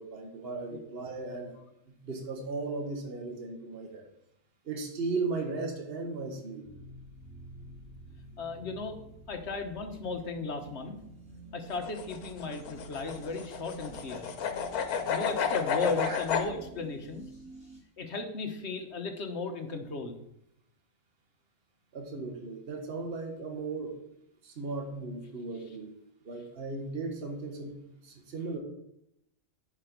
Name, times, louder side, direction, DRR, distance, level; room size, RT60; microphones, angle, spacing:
voice 1, 0.0-1.6 2.0-4.0 4.6-6.7 16.1-16.2 21.9-24.0 24.4-25.9 26.2-27.7 28.0-28.6, right 3 dB, 45° right, 4 dB, 1.5 m, -36 dB
sound 1, 6.6-17.8, right 2 dB, 5° right, 2.7 m, -49 dB
voice 2, 8.4-9.0 9.3-11.0 11.5-14.3 15.1-17.2 18.0-20.2, left 3 dB, 50° left, 6 dB, 1.3 m, -35 dB
sound 2, 11.7-16.5, left 6 dB, 85° left, 1.4 m, -31 dB
10.5 x 5.0 x 5.2 m, 0.78 s
omnidirectional pair, 1.5 m